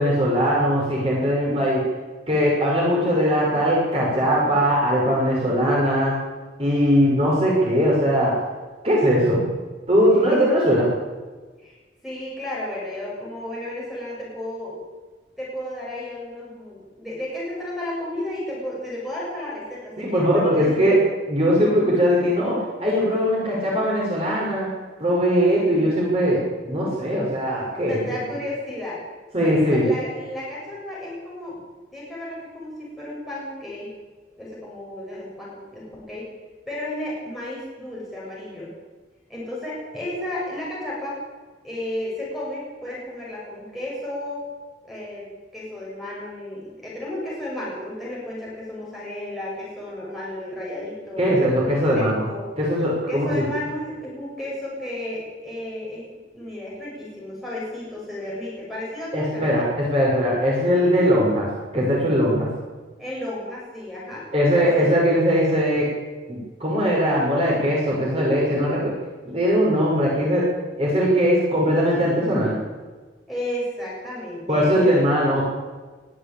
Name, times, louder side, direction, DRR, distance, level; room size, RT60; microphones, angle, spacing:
voice 1, 0.0-1.8 2.3-6.1 6.6-8.3 8.8-9.4 9.9-10.9 20.0-21.0 21.3-24.7 25.0-28.0 29.3-29.9 51.2-52.2 52.6-53.4 59.1-61.5 61.7-62.5 64.3-65.9 66.3-68.9 69.3-70.4 70.8-72.5 74.5-75.4, equal, 35° right, -4 dB, 6.2 m, -20 dB
voice 2, 12.0-14.8 15.4-21.0 25.7-25.9 27.9-29.0 29.4-31.6 31.9-33.9 34.4-36.3 36.7-38.7 39.3-41.2 41.6-44.4 44.8-45.3 45.5-51.3 51.7-52.5 53.1-56.1 56.3-59.6 63.0-64.3 64.5-64.9 73.3-75.3, left 1 dB, ahead, -5 dB, 7.4 m, -33 dB
21.5 x 15.5 x 8.9 m, 1.3 s
head